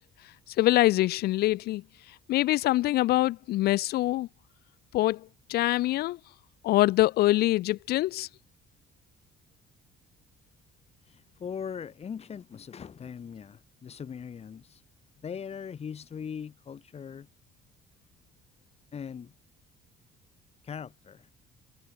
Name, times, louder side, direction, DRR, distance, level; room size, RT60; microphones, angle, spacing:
voice 1, 0.6-1.8 2.3-4.3 4.9-5.2 5.5-6.2 6.6-8.3, left 16 dB, 70° left, 0.5 m, -24 dB
voice 2, 11.1-14.8 15.2-17.3 18.9-19.3 20.6-21.3, left 7 dB, 40° left, 2.2 m, -40 dB
cardioid pair, 110°, 17 cm